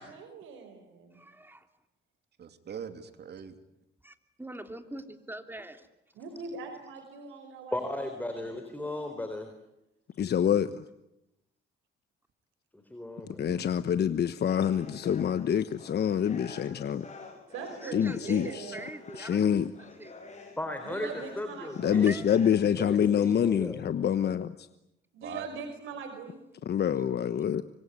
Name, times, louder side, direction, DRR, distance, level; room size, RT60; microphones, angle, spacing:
voice 1, 0.0-1.3 6.1-7.8 8.2-8.4 17.5-18.9 20.8-22.1 25.1-26.6, right 5 dB, 85° right, 5 dB, 5.1 m, -42 dB
voice 2, 1.1-1.7 4.0-5.9 17.8-20.1 22.1-22.3, right 1 dB, 10° right, 7 dB, 3.1 m, -43 dB
voice 3, 2.4-3.6 13.2-13.7 25.2-25.5 25.9-26.0, right 8 dB, 55° right, 8 dB, 3.1 m, -42 dB
voice 4, 7.7-9.5 12.7-13.5 20.6-22.1 22.6-23.8, left 1 dB, 10° left, 6 dB, 4.1 m, -36 dB
voice 5, 10.2-10.7 13.4-17.1 17.9-18.7 19.2-19.7 21.8-24.5 26.7-27.6, left 8 dB, 55° left, 12 dB, 1.1 m, -26 dB
sound 1, 14.5-22.5, left 3 dB, 35° left, 8.0 m, -48 dB
26.0 x 23.0 x 9.7 m, 0.85 s
cardioid pair, 90°, 20 cm